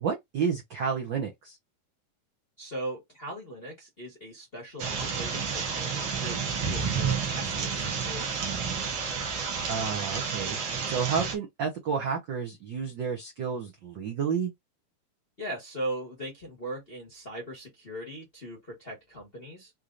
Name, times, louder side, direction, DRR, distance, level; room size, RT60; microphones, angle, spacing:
voice 1, 0.0-1.6 9.7-10.6 10.9-14.5, right 6 dB, 70° right, 1.1 m, -30 dB
voice 2, 2.6-8.4 15.4-19.7, right 1 dB, 30° left, 1.0 m, -39 dB
sound 1, 4.8-11.3, right 6 dB, 50° right, 1.4 m, -30 dB
5.4 x 3.1 x 2.5 m
omnidirectional pair, 3.5 m